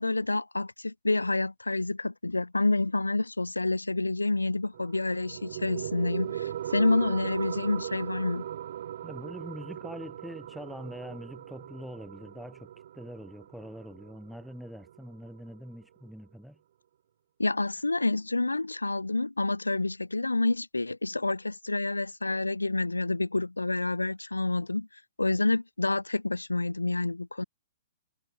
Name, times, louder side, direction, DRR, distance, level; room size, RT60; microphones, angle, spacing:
voice 1, 0.0-8.5 17.4-24.9 25.2-27.4, left 2 dB, 90° left, 0.9 m, -28 dB
sound 1, 4.7-15.8, right 10 dB, 55° right, 2.7 m, -39 dB
voice 2, 9.0-16.6, equal, ahead, 3.7 m, -43 dB
figure-of-eight pair, 120°, 0 cm